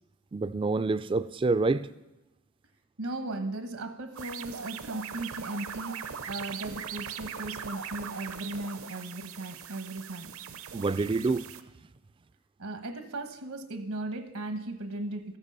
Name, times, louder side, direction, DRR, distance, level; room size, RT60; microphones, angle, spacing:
voice 1, 0.3-1.9 10.7-11.5, right 3 dB, 25° right, 0.3 m, -27 dB
voice 2, 3.0-10.3 12.6-15.4, right 2 dB, 80° right, 1.2 m, -37 dB
sound 1, 4.2-11.6, right 7 dB, 65° right, 0.6 m, -40 dB
13.5 x 8.1 x 5.5 m
head